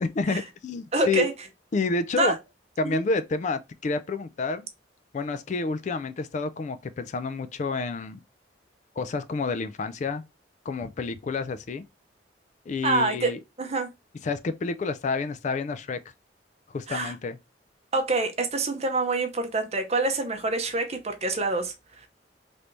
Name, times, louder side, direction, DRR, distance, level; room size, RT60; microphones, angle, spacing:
voice 1, 0.0-1.3 1.7-2.3 2.8-4.7 5.1-8.2 9.0-10.2 10.7-11.8 12.7-13.4 14.2-16.0 16.7-17.4, left 4 dB, 40° left, 0.3 m, -29 dB
voice 2, 0.9-1.3 2.1-2.4 2.8-3.0 12.8-13.3 13.6-13.9 16.9-17.1 17.9-22.1, right 3 dB, 35° right, 0.6 m, -26 dB
3.3 x 2.6 x 3.0 m
head